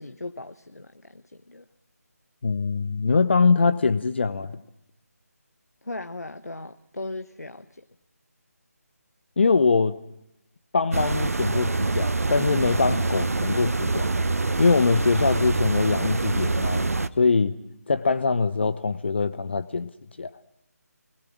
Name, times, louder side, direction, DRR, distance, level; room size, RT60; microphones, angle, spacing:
voice 1, 0.0-1.7 5.8-7.9, left 2 dB, 75° left, 1.0 m, -38 dB
voice 2, 2.4-4.6 9.4-10.0 10.7-14.1 14.6-16.9 17.2-17.6 17.9-19.9 20.2-20.3, left 4 dB, 40° left, 0.8 m, -23 dB
sound 1, 10.9-17.1, right 3 dB, 65° right, 0.9 m, -25 dB
29.0 x 21.5 x 6.1 m
figure-of-eight pair, 155°, 9 cm